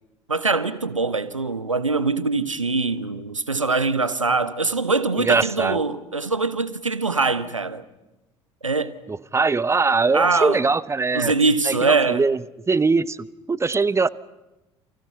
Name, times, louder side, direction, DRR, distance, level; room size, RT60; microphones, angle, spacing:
voice 1, 0.3-7.8 8.6-8.9 10.1-10.6 11.1-12.2, right 3 dB, 85° right, 1.0 m, -23 dB
voice 2, 5.2-5.8 9.1-11.3 11.6-12.4 12.7-14.1, right 4 dB, 15° right, 0.9 m, -21 dB
30.0 x 28.5 x 5.8 m
figure-of-eight pair, 60°, 16 cm